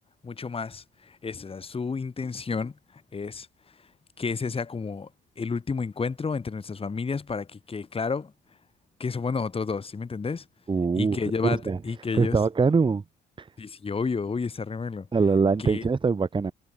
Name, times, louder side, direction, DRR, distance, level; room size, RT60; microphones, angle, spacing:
voice 1, 0.2-3.5 4.2-5.1 5.4-8.3 9.0-10.4 11.0-12.4 13.6-15.1 15.7-15.8, left 5 dB, 30° left, 1.6 m, -31 dB
voice 2, 10.7-11.8 12.1-13.0 13.4-13.5 15.1-16.5, right 4 dB, 25° right, 1.0 m, -23 dB
cardioid pair, 90°, 20 cm